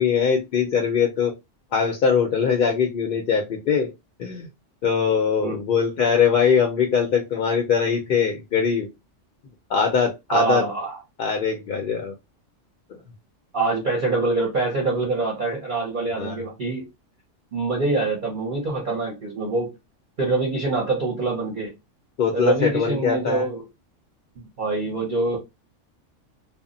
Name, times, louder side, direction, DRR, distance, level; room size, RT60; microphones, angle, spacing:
voice 1, 0.0-1.3 1.7-3.9 4.2-4.5 4.8-8.9 9.7-10.7 11.2-12.1 12.9-13.0 16.2-16.4 22.2-23.5, left 6 dB, 60° left, 0.6 m, -22 dB
voice 2, 10.3-10.9 13.5-16.8 17.5-19.7 20.2-21.7 22.3-23.6 24.4-25.4, right 3 dB, 50° right, 0.8 m, -25 dB
2.1 x 2.0 x 3.7 m
omnidirectional pair, 1.3 m